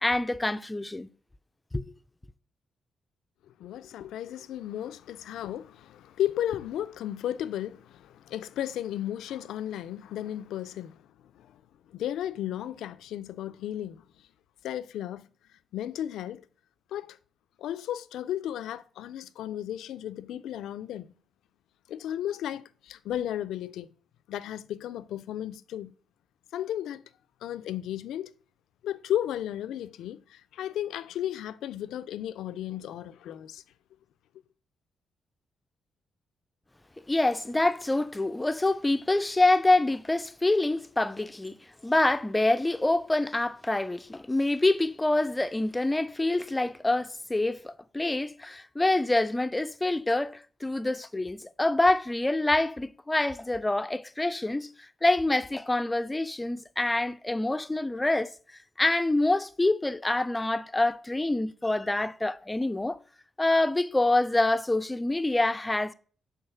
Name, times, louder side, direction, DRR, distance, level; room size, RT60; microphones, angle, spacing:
voice 1, 0.0-1.1 1.7-1.8 37.1-41.6 41.8-58.3 58.8-63.0 63.4-65.9, left 2 dB, 15° left, 0.4 m, -26 dB
voice 2, 3.5-11.6 11.9-14.1 14.6-15.3 15.7-16.4 16.9-17.2 17.6-21.2 21.9-23.9 24.3-25.9 26.5-27.0 27.4-28.3 28.8-33.6, left 11 dB, 90° left, 0.4 m, -34 dB
5.6 x 3.8 x 5.6 m
cardioid pair, 95°, 0 cm